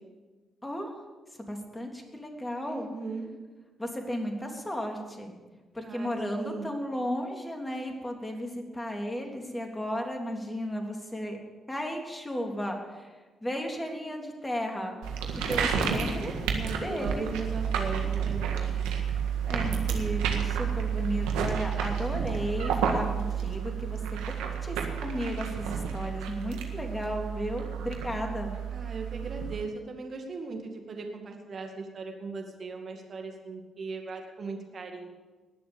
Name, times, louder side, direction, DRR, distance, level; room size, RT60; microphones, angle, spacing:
voice 1, 0.6-0.9 1.5-2.9 3.8-5.3 5.7-11.4 11.7-13.1 13.4-14.9 15.2-16.3 16.8-17.3 19.5-24.0 24.4-28.5, equal, 15° left, 2 dB, 3.4 m, -34 dB
voice 2, 2.6-3.3 5.8-6.7 16.5-18.9 28.7-35.1, right 3 dB, 55° right, 3 dB, 2.1 m, -38 dB
sound 1, 15.0-29.6, right 7 dB, 85° right, 1.7 m, -31 dB
20.0 x 7.0 x 7.1 m, 1.3 s
hypercardioid pair, 50°, 0 cm